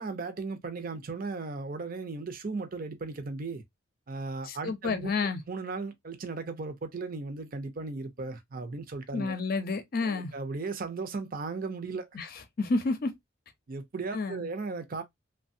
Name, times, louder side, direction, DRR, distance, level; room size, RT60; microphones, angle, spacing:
voice 1, 0.0-3.6 4.1-5.1 5.5-9.3 10.0-12.1 13.7-15.0, right 3 dB, 45° right, 0.6 m, -36 dB
voice 2, 4.5-5.4 9.1-10.3 12.1-12.3 12.6-13.1 14.1-14.5, left 3 dB, 50° left, 0.6 m, -30 dB
3.2 x 2.2 x 2.6 m
head